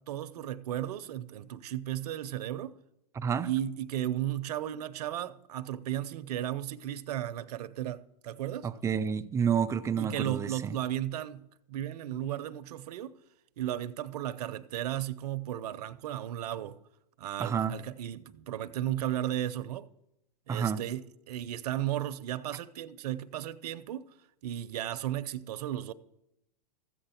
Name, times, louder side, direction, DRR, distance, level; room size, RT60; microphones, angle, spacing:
voice 1, 0.0-2.7 3.4-8.7 10.0-13.1 13.6-16.8 17.2-19.9 20.5-24.1 24.4-25.9, right 12 dB, 75° right, 0.7 m, -35 dB
voice 2, 3.2-3.5 8.6-10.7 17.4-17.7 20.5-20.8, right 7 dB, 15° right, 0.4 m, -29 dB
14.0 x 7.9 x 4.3 m
hypercardioid pair, 130°, 20 cm